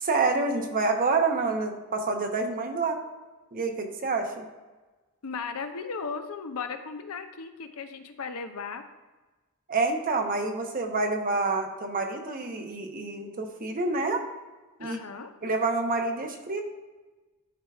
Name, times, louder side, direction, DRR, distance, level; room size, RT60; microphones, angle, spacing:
voice 1, 0.0-3.0 3.5-4.5 9.7-14.2 14.8-15.0 15.4-16.6, right 3 dB, 40° right, 4 dB, 0.8 m, -27 dB
voice 2, 5.2-8.8 14.8-15.3, left 5 dB, 70° left, 7 dB, 0.6 m, -36 dB
11.0 x 4.5 x 2.4 m, 1.2 s
head